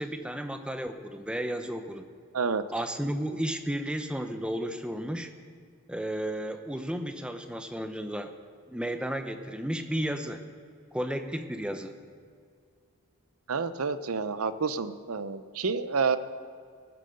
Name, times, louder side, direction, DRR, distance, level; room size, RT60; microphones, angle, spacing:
voice 1, 0.0-2.1 2.7-5.3 5.9-8.3 8.7-10.4 10.9-12.0, right 1 dB, 5° right, 7 dB, 0.7 m, -33 dB
voice 2, 13.5-16.2, right 5 dB, 80° right, 13 dB, 0.7 m, -29 dB
19.0 x 7.7 x 6.6 m, 2.2 s
head